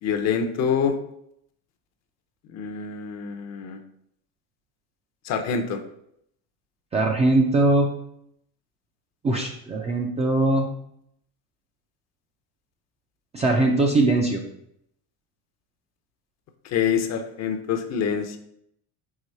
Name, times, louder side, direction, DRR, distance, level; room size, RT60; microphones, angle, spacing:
voice 1, 0.0-0.9 2.5-3.8 5.2-5.8 16.6-18.4, left 7 dB, 35° left, 7 dB, 0.6 m, -26 dB
voice 2, 6.9-7.9 9.2-10.7 13.3-14.4, right 2 dB, 15° right, 0 dB, 0.4 m, -21 dB
4.9 x 3.7 x 5.3 m, 0.73 s
cardioid pair, 150°, 44 cm